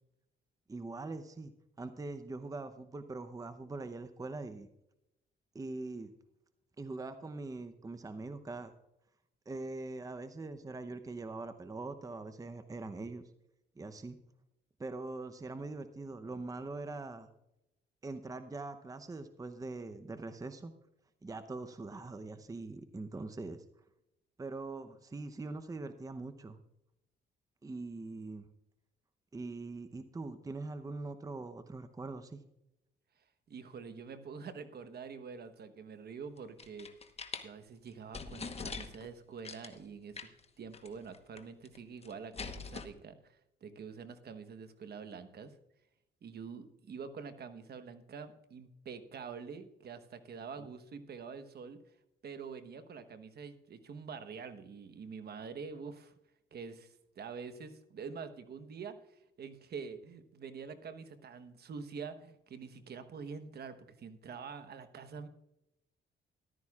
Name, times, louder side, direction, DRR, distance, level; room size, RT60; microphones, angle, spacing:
voice 1, 0.7-1.5 1.8-4.7 5.5-6.1 6.8-8.7 9.5-13.3 13.8-14.2 14.8-17.3 18.0-20.7 21.2-23.6 24.4-26.6 27.6-28.5 29.3-32.4 50.6-50.7, right 3 dB, 15° right, 10 dB, 0.7 m, -42 dB
voice 2, 33.5-36.9 37.4-40.3 40.6-45.5 46.2-51.8 52.2-56.1 56.5-65.3, right 5 dB, 55° right, 10 dB, 1.1 m, -46 dB
sound 1, 36.4-37.5 37.9-38.0 38.1-39.1 39.4-39.8 40.2-40.4 40.7-40.9 41.1-41.8 42.0-42.8, left 5 dB, 30° left, 1.1 m, -43 dB
14.0 x 12.5 x 2.4 m, 0.85 s
cardioid pair, 90°, 20 cm